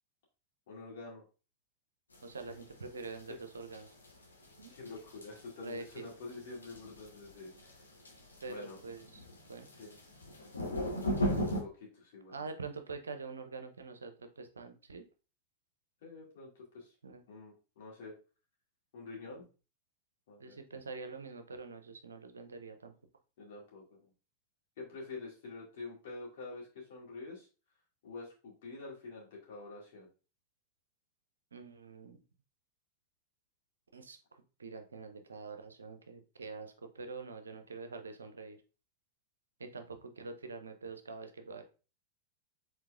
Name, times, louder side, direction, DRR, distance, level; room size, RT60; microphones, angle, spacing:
voice 1, 0.7-1.2 4.7-7.8 8.5-8.8 9.8-10.0 11.3-12.5 16.0-16.9 17.3-18.1 18.9-19.5 20.3-20.6 23.4-24.0 24.8-27.5 28.0-30.1, left 3 dB, 55° left, -3 dB, 2.0 m, -47 dB
sound 1, 2.1-11.6, equal, 80° left, 1.0 m, -38 dB
voice 2, 2.2-3.9 4.6-4.7 5.6-6.1 8.4-9.7 12.3-15.0 17.0-17.2 19.2-19.4 20.4-22.9 31.5-32.2 33.9-38.6 39.6-41.6, right 4 dB, 75° right, 7 dB, 0.5 m, -45 dB
4.6 x 3.8 x 2.3 m, 0.34 s
figure-of-eight pair, 90°, 0 cm